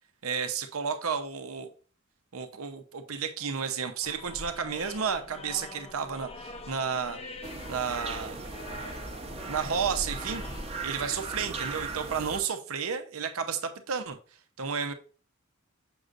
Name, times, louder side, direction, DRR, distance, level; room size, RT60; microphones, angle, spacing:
voice 1, 0.2-1.7 2.3-7.2 7.7-8.4 9.5-10.4 10.8-14.2 14.6-14.9, right 6 dB, 85° right, 8 dB, 0.8 m, -32 dB
sound 1, 4.0-10.7, left 2 dB, 30° left, 0.5 m, -45 dB
sound 2, 7.4-12.4, right 3 dB, 30° right, 0.9 m, -38 dB
7.0 x 6.5 x 2.5 m, 0.38 s
head